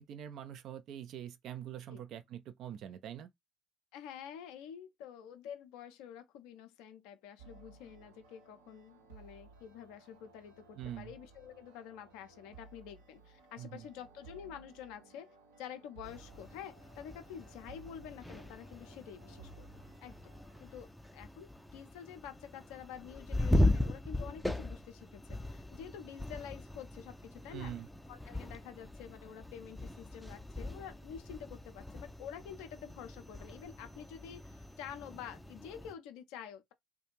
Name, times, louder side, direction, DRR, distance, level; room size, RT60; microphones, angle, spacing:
voice 1, 0.0-3.3 10.8-11.1 13.6-13.9 27.5-27.9, right 10 dB, 55° right, 0.4 m, -44 dB
voice 2, 3.9-15.3 15.6-19.7 20.0-27.7 28.1-36.7, left 9 dB, 65° left, 0.5 m, -48 dB
sound 1, 7.4-20.8, right 4 dB, 75° right, 0.8 m, -58 dB
sound 2, 16.0-35.9, left 1 dB, 5° left, 0.4 m, -38 dB
2.4 x 2.1 x 3.0 m
figure-of-eight pair, 55°, 0 cm